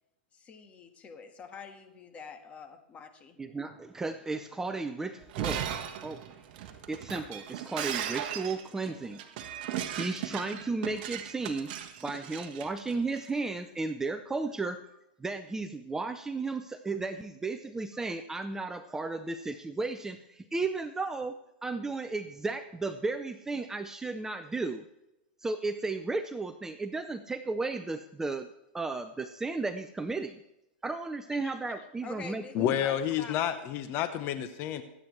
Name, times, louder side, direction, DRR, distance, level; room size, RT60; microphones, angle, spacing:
voice 1, 0.3-3.4 32.0-33.5, left 5 dB, 20° left, 6 dB, 1.5 m, -46 dB
voice 2, 3.4-5.7 6.0-6.3 6.9-9.4 9.7-11.7 12.0-14.8 15.2-24.9 25.4-28.5 28.7-30.4 30.8-32.8, right 3 dB, 10° right, 9 dB, 0.5 m, -34 dB
Shatter, 5.2-13.3, right 10 dB, 50° right, 1.4 m, -37 dB
voice 3, 32.5-34.8, left 10 dB, 35° left, 10 dB, 0.9 m, -30 dB
23.5 x 8.7 x 3.2 m, 0.91 s
hypercardioid pair, 140°, 6 cm